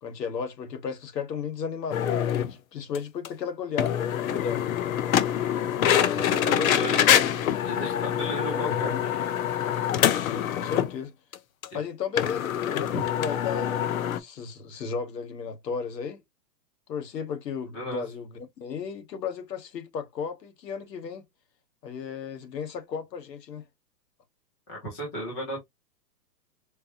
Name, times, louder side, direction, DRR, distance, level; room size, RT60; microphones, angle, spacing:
voice 1, 0.0-4.6 5.9-7.3 8.5-9.0 10.1-11.1 11.7-13.8 14.1-16.2 16.9-21.2 21.8-23.6, left 6 dB, 75° left, 1.4 m, -34 dB
sound 1, 1.9-2.5 2.9-3.0 3.3-3.4 3.8-10.9 11.3-11.4 11.6-11.7 12.2-14.2, left 10 dB, 55° left, 0.7 m, -25 dB
voice 2, 6.0-7.3 7.6-9.3 11.7-11.8 12.9-13.0 17.7-18.1 24.7-25.6, equal, 10° left, 0.4 m, -35 dB
4.5 x 2.7 x 2.7 m
hypercardioid pair, 150°, 50 cm